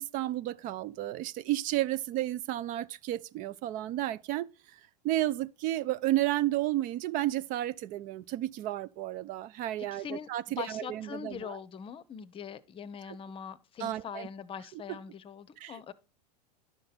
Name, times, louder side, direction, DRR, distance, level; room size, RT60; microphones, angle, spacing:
voice 1, 0.0-11.6 13.8-14.3 14.9-15.0 15.6-15.9, right 15 dB, 40° right, 0.5 m, -32 dB
voice 2, 9.8-10.3 10.6-15.9, left 7 dB, 25° left, 0.8 m, -42 dB
11.0 x 6.4 x 4.1 m
hypercardioid pair, 95°, 21 cm